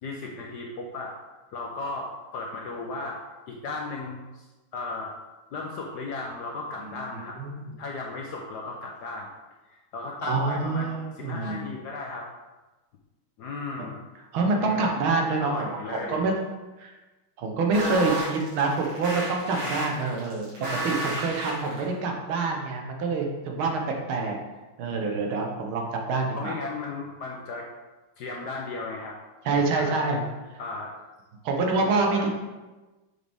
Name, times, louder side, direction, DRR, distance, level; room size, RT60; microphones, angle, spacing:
voice 1, 0.0-1.2 1.5-3.2 3.5-4.5 4.7-5.1 5.5-7.4 7.8-9.3 9.7-12.3 13.4-14.0 14.6-14.9 15.4-16.2 26.3-27.7 28.2-29.2 29.4-30.1 30.6-31.0 31.9-32.3, left 3 dB, 70° left, 0 dB, 1.0 m, -35 dB
voice 2, 7.1-7.7 10.2-11.7 13.8-13.9 14.3-16.4 16.8-16.9 17.4-23.8 24.1-24.4 24.8-26.5 29.5-30.2 31.4-32.3, right 3 dB, 75° right, 1 dB, 1.7 m, -26 dB
sound 1, 17.7-21.9, right 1 dB, 55° right, 2.6 m, -32 dB
6.5 x 5.2 x 3.5 m, 1.2 s
omnidirectional pair, 2.4 m